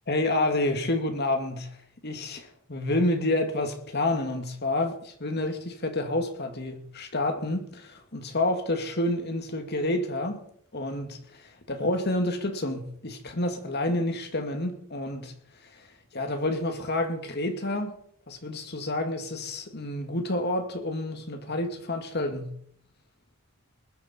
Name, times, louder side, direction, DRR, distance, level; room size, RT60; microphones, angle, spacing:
voice 1, 0.1-1.8 2.0-10.5 10.7-15.3 15.6-15.9 16.1-18.0 18.3-22.6, left 1 dB, 50° left, 2.2 m, -29 dB
20.0 x 11.5 x 4.4 m
head